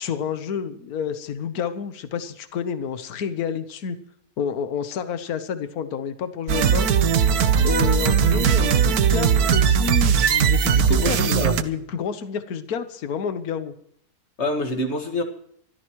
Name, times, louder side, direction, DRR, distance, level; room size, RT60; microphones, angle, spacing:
voice 1, 0.0-4.0 4.4-6.9 7.6-13.7, left 7 dB, 70° left, 1.5 m, -29 dB
sound 1, 6.5-11.6, right 7 dB, 75° right, 1.3 m, -19 dB
voice 2, 10.9-11.5 14.4-15.2, left 1 dB, 45° left, 2.1 m, -26 dB
24.5 x 13.5 x 3.1 m
omnidirectional pair, 1.7 m